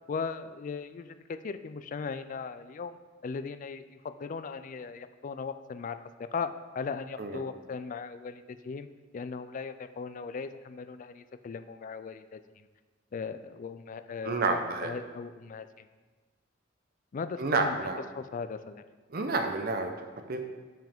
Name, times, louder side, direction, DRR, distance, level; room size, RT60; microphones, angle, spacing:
voice 1, 0.1-8.9 9.1-12.7 13.1-15.9 17.1-17.8 18.1-18.8, left 5 dB, 45° left, 11 dB, 0.3 m, -38 dB
voice 2, 14.2-14.9 17.4-18.0 19.1-19.9 20.3-20.4, right 3 dB, 55° right, 5 dB, 0.7 m, -29 dB
7.2 x 5.8 x 3.6 m, 1.4 s
head